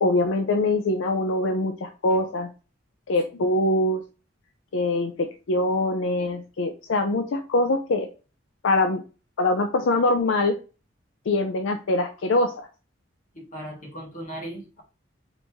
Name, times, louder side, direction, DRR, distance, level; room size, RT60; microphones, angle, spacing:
voice 1, 0.0-2.5 3.1-4.0 4.7-8.1 8.6-9.0 9.4-10.6 11.3-12.7, left 2 dB, 75° left, 5 dB, 0.5 m, -23 dB
voice 2, 13.3-14.8, right 1 dB, 45° left, 0 dB, 1.5 m, -38 dB
4.0 x 2.9 x 3.5 m, 0.33 s
head